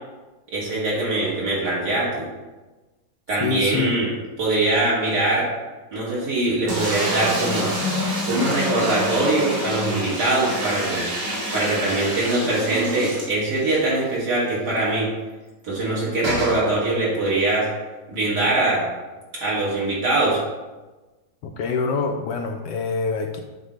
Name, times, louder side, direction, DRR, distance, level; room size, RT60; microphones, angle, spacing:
voice 1, 0.5-2.3 3.3-4.1 4.4-5.5 5.9-7.7 8.3-11.1 11.5-15.1 15.6-17.7 18.1-18.8 19.4-20.4, right 2 dB, 60° right, -6 dB, 2.5 m, -22 dB
voice 2, 3.4-4.0 21.4-23.4, left 4 dB, 75° left, 4 dB, 1.1 m, -25 dB
sound 1, 6.7-13.8 14.2-14.3 14.5-14.6 16.2-16.6, equal, 75° right, 2.6 m, -27 dB
8.0 x 2.8 x 5.1 m, 1.2 s
omnidirectional pair, 2.1 m